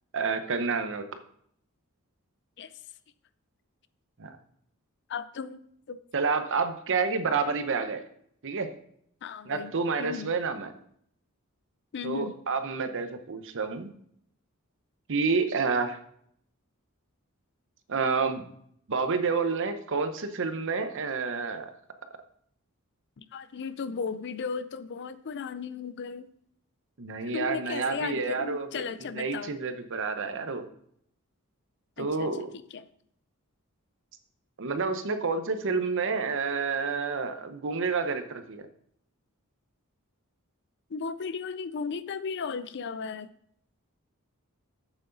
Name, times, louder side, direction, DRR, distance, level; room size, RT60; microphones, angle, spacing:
voice 1, 0.1-1.0 4.2-4.3 6.1-8.0 8.4-8.7 9.5-10.7 12.0-13.9 15.1-16.0 17.9-18.4 18.9-21.7 27.0-28.7 29.1-30.7 32.0-32.5 34.6-38.7, right 4 dB, 60° right, 9 dB, 0.8 m, -29 dB
voice 2, 5.1-5.6 5.9-6.0 9.2-9.7 10.0-10.3 11.9-12.4 23.2-26.3 27.2-29.5 32.0-32.3 32.7-32.9 40.9-43.3, left 5 dB, 55° left, 15 dB, 0.4 m, -35 dB
8.1 x 7.9 x 3.9 m, 0.67 s
head